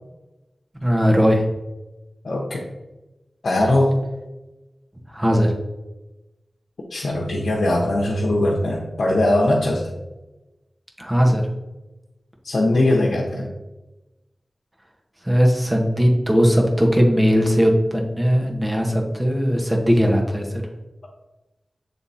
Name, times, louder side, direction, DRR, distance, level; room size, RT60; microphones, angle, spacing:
voice 1, 0.8-1.4 5.1-5.5 11.0-11.4 15.2-20.6, equal, 20° right, 0 dB, 1.5 m, -18 dB
voice 2, 2.2-2.6 3.4-4.0 6.9-9.9 12.4-13.5, left 1 dB, 80° left, -4 dB, 0.9 m, -20 dB
7.5 x 3.4 x 4.2 m, 1.0 s
cardioid pair, 40°, 0 cm